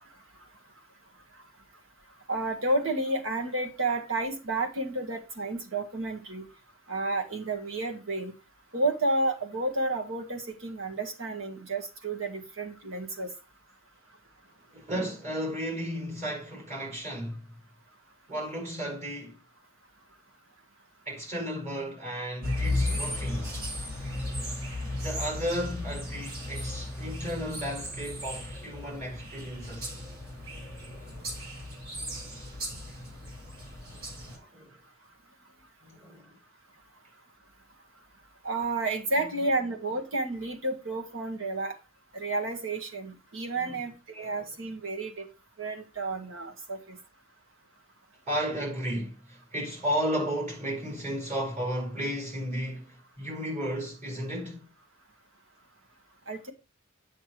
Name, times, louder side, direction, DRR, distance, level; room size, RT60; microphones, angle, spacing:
voice 1, 2.3-6.5 6.9-8.3 8.7-13.3 38.4-41.7 42.1-45.3 45.6-47.0 56.3-56.5, right 2 dB, 65° right, 1.8 m, -31 dB
voice 2, 14.7-17.4 18.3-19.4 21.1-23.6 24.9-30.0 34.3-34.7 35.8-36.4 39.3-39.4 43.5-43.8 44.2-44.4 48.3-54.7, equal, 35° right, 4.6 m, -34 dB
sound 1, 22.4-34.4, left 1 dB, 85° right, 3.4 m, -35 dB
8.7 x 6.7 x 3.1 m
head